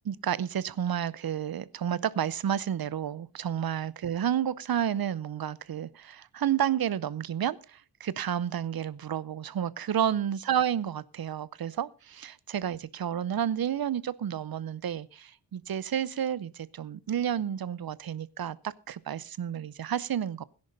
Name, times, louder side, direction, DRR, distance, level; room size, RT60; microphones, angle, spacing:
voice 1, 0.1-20.4, right 9 dB, 55° right, 19 dB, 0.6 m, -31 dB
17.5 x 10.5 x 3.9 m, 0.34 s
wide cardioid pair, 130°, 44 cm